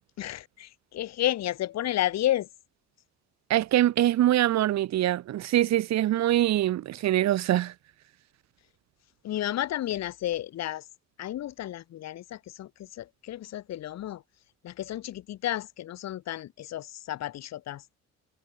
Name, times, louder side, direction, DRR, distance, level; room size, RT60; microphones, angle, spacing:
voice 1, 0.2-2.5 9.2-10.8 11.2-12.7 13.0-14.2 14.6-17.8, left 13 dB, 60° left, 0.8 m, -32 dB
voice 2, 3.5-7.7, right 13 dB, 60° right, 0.8 m, -24 dB
cardioid pair, 90°, 30 cm